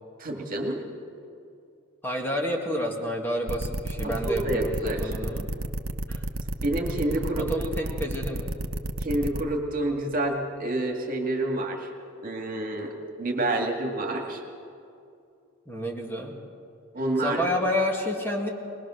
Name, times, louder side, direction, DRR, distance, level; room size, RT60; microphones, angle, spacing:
voice 1, 0.2-0.8 4.0-5.0 6.6-7.5 9.0-11.9 12.2-12.9 13.2-14.4 16.9-17.4, right 1 dB, 45° right, 2 dB, 2.1 m, -28 dB
voice 2, 2.0-5.5 6.1-6.2 7.4-8.6 15.7-16.3 17.2-18.5, equal, 10° left, -1 dB, 2.0 m, -29 dB
sound 1, 3.5-9.4, right 1 dB, 80° right, 0.9 m, -31 dB
21.0 x 20.5 x 6.4 m, 2.5 s
head